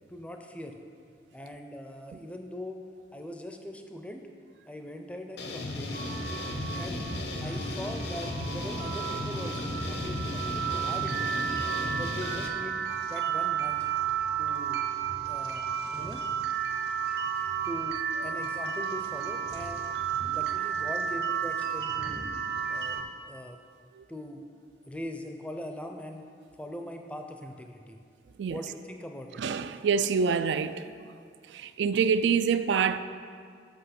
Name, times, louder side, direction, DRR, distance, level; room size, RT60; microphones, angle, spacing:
voice 1, 0.1-0.7 1.3-2.8 3.1-4.3 4.7-6.0 6.7-7.0 7.4-11.6 12.0-12.8 13.1-13.9 14.4-14.9 15.3-16.3 17.6-19.8 20.2-22.2 22.7-23.6 24.1-24.5 24.9-26.3 26.6-28.0 28.5-29.4 29.7-29.8, left 1 dB, 5° left, 0.5 m, -41 dB
sound 1, 5.4-12.5, left 2 dB, 75° left, 0.8 m, -35 dB
sound 2, 5.9-23.0, right 7 dB, 70° right, 0.9 m, -32 dB
voice 2, 29.4-30.9 31.5-33.0, right 6 dB, 85° right, 0.3 m, -26 dB
7.9 x 5.8 x 5.8 m
head